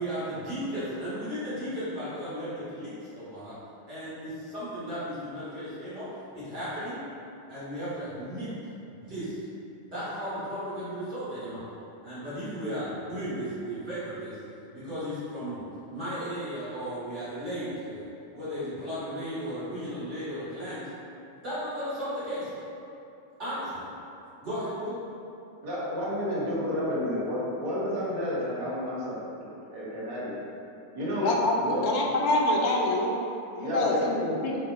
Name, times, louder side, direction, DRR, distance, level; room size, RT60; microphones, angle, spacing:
voice 1, 0.0-3.6 3.9-7.0 7.5-8.5 8.9-9.3 9.9-11.6 12.0-14.4 14.7-20.9 21.4-22.5 23.4-23.8 24.4-25.0, equal, 35° right, -13 dB, 1.4 m, -35 dB
voice 2, 25.6-29.2 29.7-30.4 30.9-31.3 31.6-31.9 33.6-34.2, equal, 55° right, -8 dB, 0.9 m, -30 dB
voice 3, 31.2-31.5 31.8-33.1 33.5-34.6, left 2 dB, 45° left, -1 dB, 0.4 m, -25 dB
3.7 x 2.2 x 2.4 m, 2.7 s
figure-of-eight pair, 90°, 0 cm